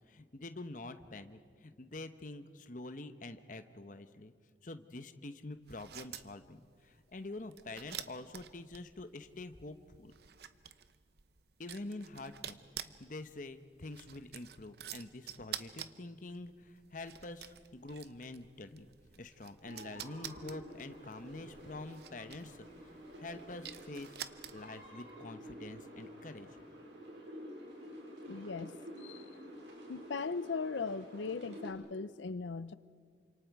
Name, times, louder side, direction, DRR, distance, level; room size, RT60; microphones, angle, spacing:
voice 1, 0.1-4.3 4.6-10.1 11.6-18.9 19.2-22.9 23.2-24.2 24.5-26.5, left 2 dB, 45° left, 9 dB, 1.0 m, -46 dB
sound 1, 5.6-24.9, right 10 dB, 60° right, 0.8 m, -50 dB
sound 2, 19.6-31.7, equal, 80° right, 5.3 m, -50 dB
voice 2, 28.3-29.3 29.9-32.7, left 4 dB, 90° left, 16 dB, 0.6 m, -39 dB
28.5 x 26.5 x 4.8 m, 2.1 s
head